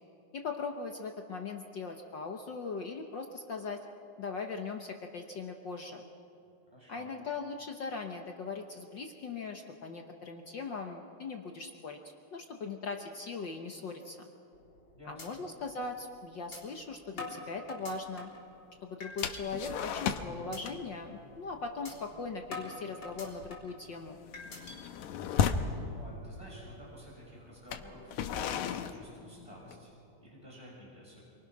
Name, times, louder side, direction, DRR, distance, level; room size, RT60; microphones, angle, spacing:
voice 1, 0.3-3.8 4.2-6.1 6.9-12.0 12.3-14.2 15.1-18.3 18.8-24.2, left 4 dB, 60° left, 3 dB, 1.2 m, -40 dB
voice 2, 6.7-7.1 14.9-15.4 20.3-20.6 25.9-31.2, equal, 10° left, -4 dB, 6.2 m, -52 dB
sound 1, 14.5-14.8 15.2-15.3 15.7-15.8 16.5-16.6 17.2-18.4 19.0-19.4 19.9-20.1 20.5-20.6 21.0-21.2 21.8-21.9 22.5-23.8 24.3-24.8, left 3 dB, 40° left, 4.4 m, -44 dB
sound 2, 19.2-20.4 20.6-21.0 21.3-21.5 21.9-22.2 22.4-22.7 23.1-25.8 26.6-26.7 27.6-29.9, left 8 dB, 80° left, 2.3 m, -34 dB
28.0 x 24.0 x 6.0 m, 2.6 s
omnidirectional pair, 3.4 m